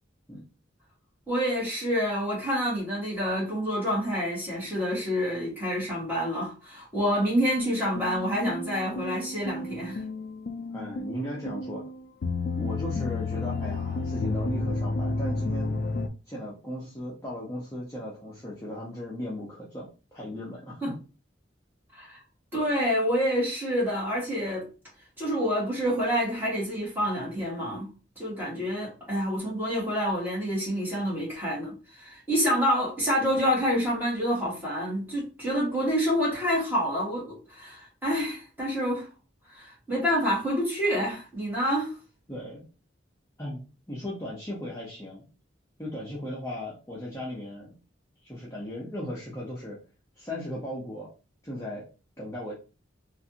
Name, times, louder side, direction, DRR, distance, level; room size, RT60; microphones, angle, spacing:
voice 1, 1.3-10.0 20.8-20.9 21.9-22.2 22.5-24.7 25.2-27.9 28.1-39.1 39.5-42.0, equal, 10° right, 1.6 m, -27 dB
sound 1, 7.6-16.1, left 3 dB, 55° left, 0.3 m, -31 dB
voice 2, 10.7-11.8 12.6-15.8 16.3-20.8 42.3-42.6 43.4-45.2 45.8-47.7 48.2-49.8 50.2-51.1 51.4-51.9 52.2-52.5, left 1 dB, 15° left, 0.7 m, -37 dB
3.2 x 2.5 x 2.8 m
head